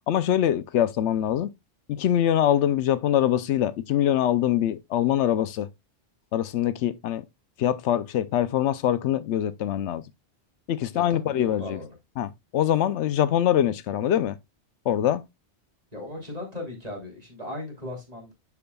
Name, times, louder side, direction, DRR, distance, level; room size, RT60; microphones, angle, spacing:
voice 1, 0.1-1.5 1.9-5.7 6.3-7.2 7.6-10.0 10.7-11.8 12.2-14.4 14.9-15.2, left 11 dB, 80° left, 0.9 m, -24 dB
voice 2, 10.9-11.9 15.9-18.3, left 1 dB, 35° right, 3.0 m, -37 dB
12.0 x 4.8 x 2.3 m
omnidirectional pair, 1.2 m